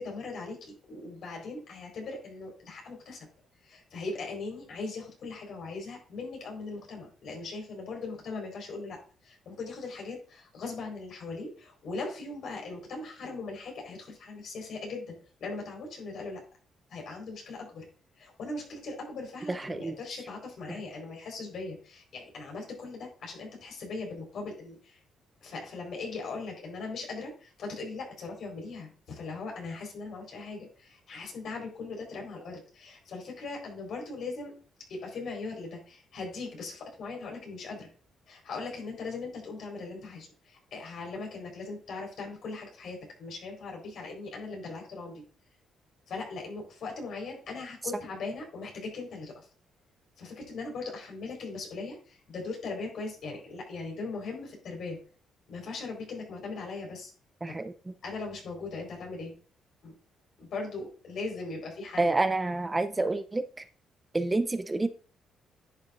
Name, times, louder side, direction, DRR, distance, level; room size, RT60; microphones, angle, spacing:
voice 1, 0.0-3.3 3.6-9.0 9.2-16.4 16.9-17.9 18.2-25.0 25.4-34.5 34.9-37.9 38.3-45.2 46.1-49.5 50.2-55.0 55.5-57.1 57.5-57.6 58.0-59.3 59.8-60.0 60.4-62.1 62.4-62.5, left 3 dB, 65° left, 1 dB, 4.3 m, -39 dB
voice 2, 57.4-57.7 62.0-63.4 64.1-64.9, right 2 dB, 20° right, 11 dB, 0.6 m, -28 dB
10.5 x 6.9 x 2.5 m, 0.39 s
cardioid pair, 90°, 0 cm